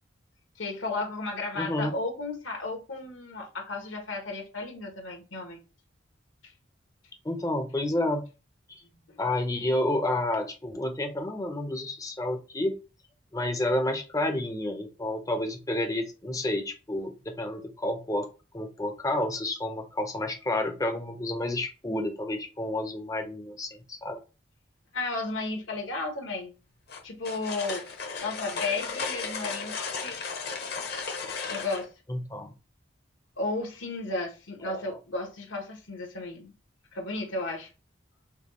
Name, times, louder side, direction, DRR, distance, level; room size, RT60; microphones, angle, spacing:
voice 1, 0.6-5.6 24.9-26.5 27.0-27.8 28.2-30.2 31.5-31.9 33.4-36.5 36.9-37.7, left 3 dB, 75° left, 1.3 m, -33 dB
voice 2, 1.5-1.9 7.2-8.3 8.7-8.8 9.2-12.8 13.3-18.3 18.5-24.2 32.1-32.5 34.6-35.0, left 1 dB, 15° left, 0.6 m, -30 dB
sound 1, 26.9-31.9, left 5 dB, 50° left, 0.9 m, -35 dB
5.3 x 2.3 x 3.0 m
head